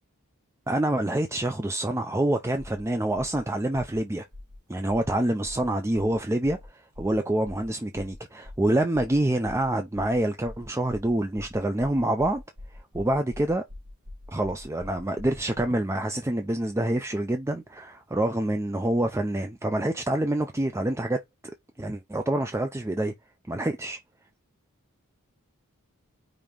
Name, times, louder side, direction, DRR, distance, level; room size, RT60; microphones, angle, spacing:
voice 1, 0.7-4.3 4.7-12.4 12.7-13.6 14.3-21.2 21.8-23.1 23.5-24.0, right 1 dB, 10° right, 0.5 m, -26 dB
sound 1, 2.6-2.8 3.2-3.4 3.7-4.0 4.3-4.6 4.9-5.1 5.4-5.7 5.9-6.2 6.4-6.7 6.9-7.2 7.4-7.7 7.9-8.2 8.4-8.7 8.9-9.2 9.4-9.7 9.9-10.2 10.4-15.8, left 2 dB, 80° right, 2.3 m, -43 dB
5.1 x 2.8 x 3.6 m
head